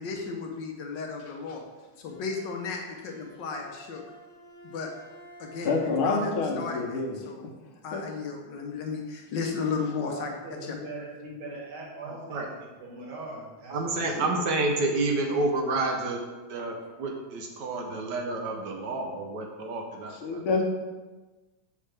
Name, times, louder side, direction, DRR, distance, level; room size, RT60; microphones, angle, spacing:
voice 1, 0.0-1.6 2.0-4.0 4.6-4.9 5.4-6.3 6.6-7.5 7.8-10.3 16.8-16.9, left 4 dB, 70° left, 2 dB, 1.3 m, -34 dB
Bowed string instrument, 2.0-6.4, equal, 50° left, 0.7 m, -50 dB
voice 2, 5.6-7.2 7.9-8.0 8.5-8.6 14.2-14.4 20.2-20.6, left 4 dB, 85° left, 1 dB, 1.8 m, -28 dB
voice 3, 9.8-14.3, right 2 dB, 85° right, -4 dB, 2.4 m, -41 dB
voice 4, 12.0-12.5 13.7-16.2 16.5-20.4, right 2 dB, 65° right, 2 dB, 1.2 m, -29 dB
6.5 x 5.5 x 3.3 m, 1.2 s
omnidirectional pair, 2.3 m